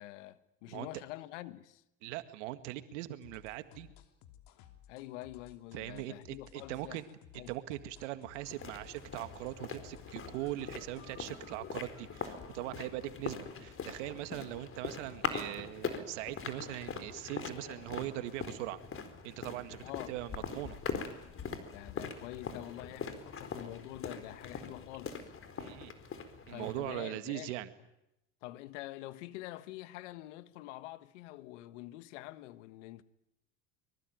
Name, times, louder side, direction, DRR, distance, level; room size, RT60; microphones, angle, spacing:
voice 1, 0.0-1.8 4.9-7.0 7.4-7.5 19.8-20.1 21.7-25.3 26.5-27.6 28.4-33.0, left 16 dB, 85° left, 1.5 m, -46 dB
voice 2, 2.0-3.9 5.7-7.0 7.3-18.8 19.2-20.8 25.6-25.9 26.5-27.7, right 15 dB, 85° right, 1.9 m, -41 dB
sound 1, 3.2-11.2, left 10 dB, 70° left, 3.1 m, -58 dB
sound 2, 8.4-27.0, left 6 dB, 35° left, 4.3 m, -42 dB
24.0 x 23.5 x 9.3 m
supercardioid pair, 95°, 35 cm